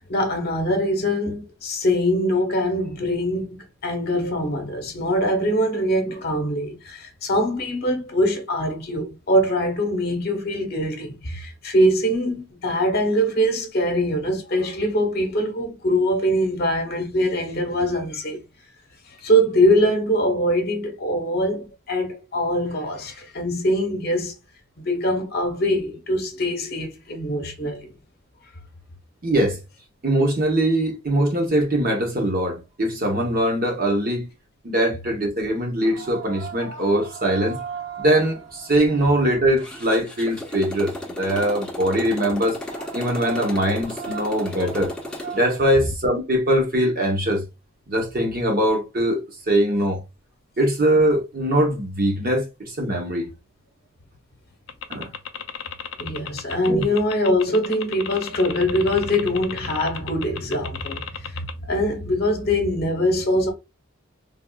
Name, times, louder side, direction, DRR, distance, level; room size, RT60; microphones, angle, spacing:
voice 1, 0.1-18.4 19.2-24.4 24.8-27.9 56.0-63.5, equal, 50° left, 0.8 m, -23 dB
voice 2, 29.2-29.6 30.0-34.3 34.6-37.6 38.0-42.6 42.9-44.9 45.3-47.4 47.9-50.0 50.6-53.3 54.9-55.1 56.7-56.8, right 1 dB, 45° right, 0.9 m, -22 dB
sound 1, 35.8-45.7, right 6 dB, 75° right, 0.8 m, -39 dB
Motorcycle, 39.6-45.4, left 1 dB, 5° left, 0.6 m, -34 dB
sound 2, 54.7-61.5, left 8 dB, 65° left, 0.4 m, -33 dB
3.4 x 2.4 x 2.2 m
head